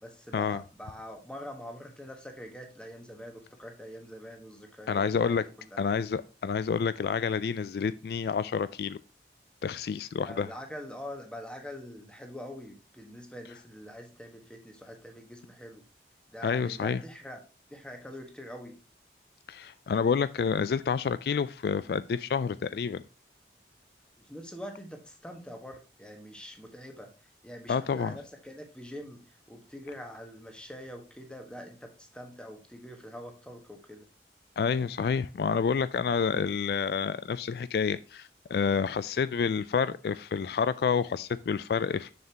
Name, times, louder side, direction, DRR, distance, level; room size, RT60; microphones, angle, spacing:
voice 1, 0.0-5.8 10.2-15.8 16.3-17.4 17.7-18.8 24.2-27.1 27.4-29.2 29.5-34.1, equal, 5° left, 1.3 m, -44 dB
voice 2, 4.9-5.4 5.8-9.0 9.6-10.5 16.4-17.0 19.5-23.0 27.7-28.2 34.6-42.1, left 6 dB, 60° left, 0.3 m, -29 dB
6.6 x 6.6 x 2.8 m
head